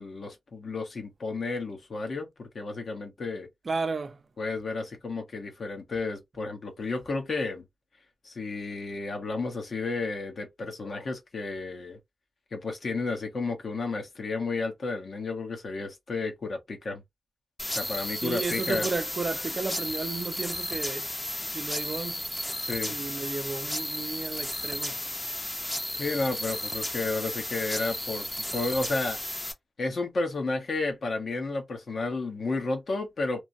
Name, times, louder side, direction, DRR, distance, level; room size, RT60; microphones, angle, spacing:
voice 1, 0.0-3.5 4.4-7.6 8.2-12.0 12.5-17.0 17.7-18.9 22.6-23.0 26.0-29.2 29.8-33.4, left 3 dB, 65° left, 1.0 m, -32 dB
voice 2, 3.6-4.2 18.2-21.1 21.4-22.2 22.9-25.0, right 4 dB, 50° right, 0.6 m, -33 dB
sound 1, 17.6-29.5, left 1 dB, 10° left, 0.7 m, -34 dB
3.2 x 2.1 x 2.6 m
wide cardioid pair, 85°, 0 cm